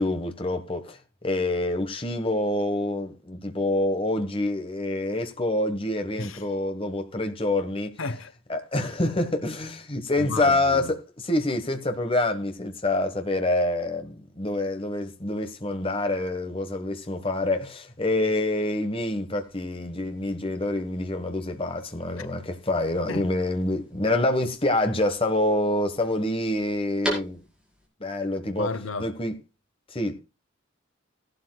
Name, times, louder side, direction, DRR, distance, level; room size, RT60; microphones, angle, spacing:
voice 1, 0.0-8.0 8.5-27.4 28.0-29.3 29.9-30.2, left 2 dB, 25° left, 1.4 m, -26 dB
voice 2, 8.0-8.3 10.2-10.9 22.2-22.3 23.1-23.3 28.6-29.1, left 3 dB, 80° left, 1.1 m, -32 dB
sound 1, 19.4-27.9, right 1 dB, 5° right, 5.0 m, -41 dB
18.0 x 12.0 x 2.3 m
head